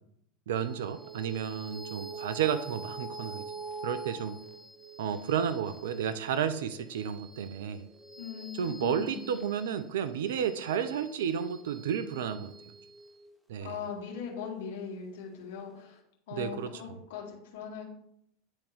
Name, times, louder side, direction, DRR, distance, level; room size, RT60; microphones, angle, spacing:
sound 1, 0.5-15.3, right 4 dB, 5° right, 0.9 m, -46 dB
voice 1, 0.5-3.4 3.8-4.4 5.0-7.8 8.6-12.5 13.5-13.7 16.3-17.0, right 8 dB, 70° right, 12 dB, 0.4 m, -32 dB
voice 2, 8.2-9.2 13.6-16.0 16.3-17.8, left 7 dB, 65° left, -2 dB, 1.9 m, -40 dB
10.0 x 3.5 x 3.3 m, 0.76 s
hypercardioid pair, 85°, 0 cm